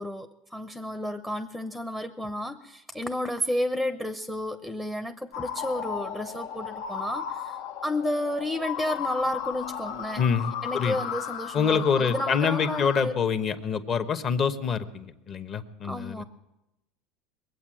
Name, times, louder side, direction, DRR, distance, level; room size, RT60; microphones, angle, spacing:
voice 1, 0.0-7.6 7.8-10.2 10.6-13.1 15.8-16.2, left 1 dB, 5° left, 10 dB, 0.7 m, -31 dB
sound 1, 5.3-13.0, left 9 dB, 75° left, 1.0 m, -35 dB
voice 2, 10.2-11.0 11.5-16.2, left 6 dB, 35° left, 9 dB, 1.1 m, -26 dB
21.5 x 8.5 x 7.6 m, 0.94 s
supercardioid pair, 135°, 0 cm